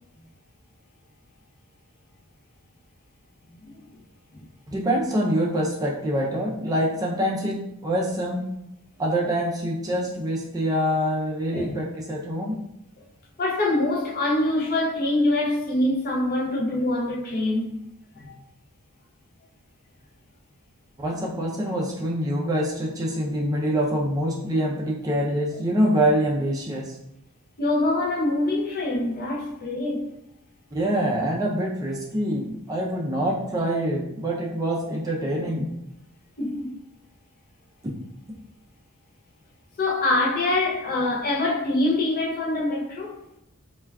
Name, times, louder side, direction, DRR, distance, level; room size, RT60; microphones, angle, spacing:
voice 1, 4.7-8.4 9.0-12.6 21.0-26.9 30.7-35.7, equal, 15° right, 0.3 m, -25 dB
voice 2, 13.4-17.7 18.2-18.4 27.6-30.1 36.4-36.7 39.8-43.2, left 2 dB, 45° left, 0.5 m, -24 dB
2.2 x 2.2 x 3.4 m
head